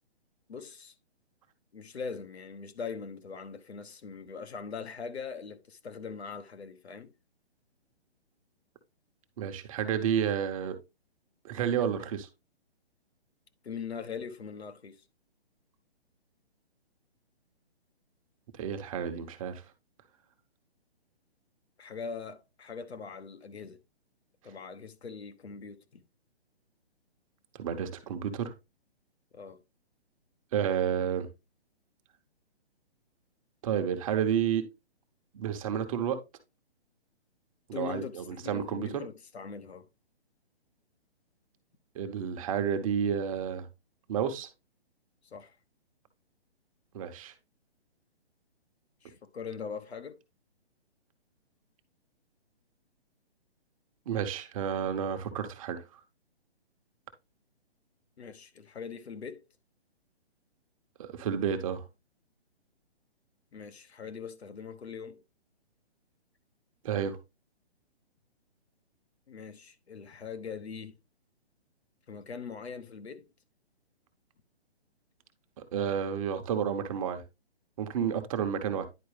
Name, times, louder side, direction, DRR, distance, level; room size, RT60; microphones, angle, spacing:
voice 1, 0.5-0.9 1.7-7.1 13.6-15.0 21.8-23.8 24.4-26.0 29.3-29.6 37.7-39.9 45.2-45.5 49.0-50.2 58.2-59.4 63.5-65.2 69.3-71.0 72.1-73.2, left 6 dB, 75° left, 1.1 m, -41 dB
voice 2, 9.4-10.8 11.4-12.3 18.5-19.6 27.6-28.5 30.5-31.3 33.6-34.6 35.3-36.2 37.7-39.0 41.9-43.7 44.1-44.5 46.9-47.3 54.1-56.0 61.0-61.8 66.8-67.2 75.7-77.2 77.8-78.9, right 8 dB, 30° right, 1.0 m, -30 dB
10.0 x 4.6 x 3.3 m
hypercardioid pair, 140°, 32 cm